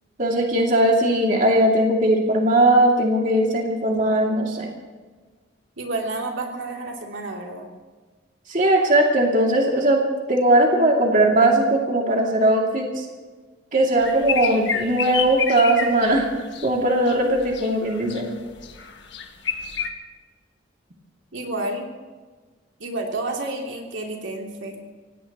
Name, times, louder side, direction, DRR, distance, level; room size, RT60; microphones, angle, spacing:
voice 1, 0.2-4.7 8.5-10.0 10.3-13.0 13.7-16.3 16.6-18.3, right 1 dB, 40° right, -1 dB, 2.5 m, -19 dB
voice 2, 5.8-7.7 21.3-21.9 22.8-24.8, right 2 dB, 80° right, 0 dB, 2.9 m, -30 dB
sound 1, 14.0-16.7 17.1-18.3 18.5-19.9, left 6 dB, 60° left, 1.6 m, -29 dB
27.0 x 18.0 x 3.0 m, 1.4 s
head